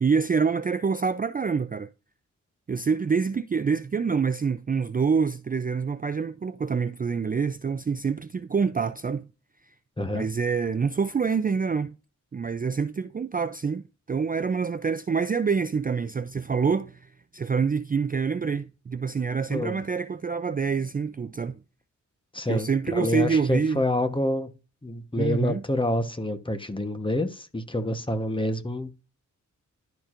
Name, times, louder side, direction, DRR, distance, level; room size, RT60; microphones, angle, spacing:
voice 1, 0.0-1.9 2.7-9.3 10.1-11.9 12.3-21.6 22.5-23.8 25.2-25.6, right 5 dB, 30° right, 0.4 m, -26 dB
voice 2, 10.0-10.3 19.5-19.8 22.3-24.5 24.8-29.0, left 1 dB, 15° left, 1.1 m, -27 dB
11.5 x 4.5 x 2.5 m
wide cardioid pair, 95°, 31 cm